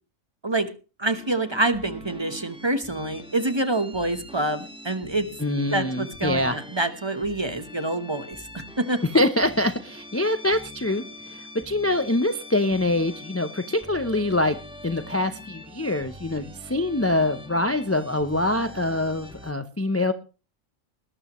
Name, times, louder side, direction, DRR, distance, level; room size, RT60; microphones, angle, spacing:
sound 1, 1.0-19.5, left 1 dB, 5° right, 1.3 m, -43 dB
voice 1, 1.0-5.3 5.7-9.0, right 2 dB, 20° right, 10 dB, 1.1 m, -26 dB
voice 2, 5.4-6.6 9.1-14.6 14.8-20.1, left 1 dB, 15° left, 9 dB, 0.4 m, -24 dB
20.0 x 12.5 x 3.1 m, 0.34 s
omnidirectional pair, 1.4 m